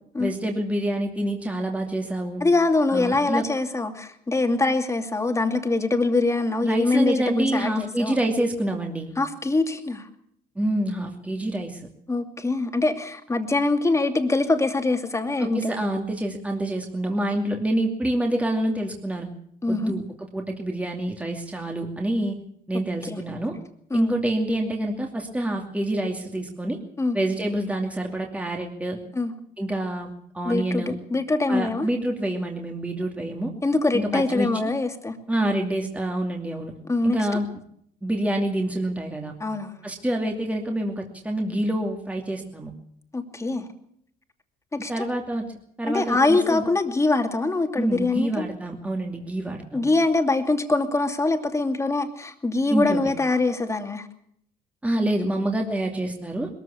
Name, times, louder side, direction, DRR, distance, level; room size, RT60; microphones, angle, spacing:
voice 1, 0.2-2.4 2.9-3.4 6.6-9.1 10.6-11.9 15.4-19.3 19.7-22.3 22.7-23.5 23.9-26.8 27.1-29.0 29.6-30.1 30.3-30.9 31.5-33.5 33.9-34.7 35.3-36.7 37.0-37.5 38.0-39.4 39.8-42.7 44.9-45.4 45.8-46.7 47.8-49.9 52.7-53.1 54.8-56.5, right 1 dB, 10° right, 2 dB, 2.6 m, -27 dB
voice 2, 2.4-8.2 9.2-10.1 12.1-15.7 19.6-19.9 23.1-23.2 23.9-24.1 27.0-27.2 29.1-29.3 30.4-31.9 33.6-35.2 36.9-37.2 39.4-39.8 43.1-43.7 44.7-45.1 45.9-48.5 49.7-54.1, left 3 dB, 15° left, 6 dB, 2.7 m, -23 dB
21.5 x 14.5 x 8.5 m, 0.69 s
cardioid pair, 110°, 17 cm